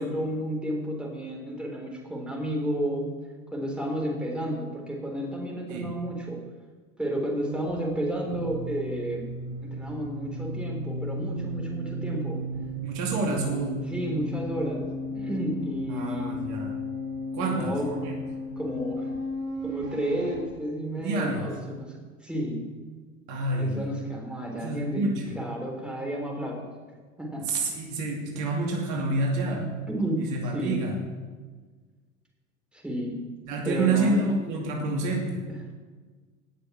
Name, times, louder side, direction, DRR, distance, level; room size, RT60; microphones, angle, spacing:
voice 1, 0.0-3.2 3.5-6.4 7.0-9.3 9.6-12.4 13.2-16.4 17.4-18.0 18.6-19.1 19.6-21.9 22.2-22.7 23.6-26.8 27.2-27.5 29.4-30.8 32.7-33.2 33.6-34.3 35.5-35.7, right 1 dB, 5° right, -1 dB, 3.8 m, -32 dB
sound 1, 7.5-20.4, equal, 90° right, 2.6 m, -35 dB
voice 2, 12.5-13.9 15.9-16.7 17.3-18.2 21.0-21.5 23.3-23.8 24.5-25.4 27.3-29.6 30.2-31.0 33.5-35.4, right 2 dB, 50° right, -1 dB, 2.6 m, -28 dB
18.0 x 6.8 x 6.1 m, 1.4 s
figure-of-eight pair, 80°, 39 cm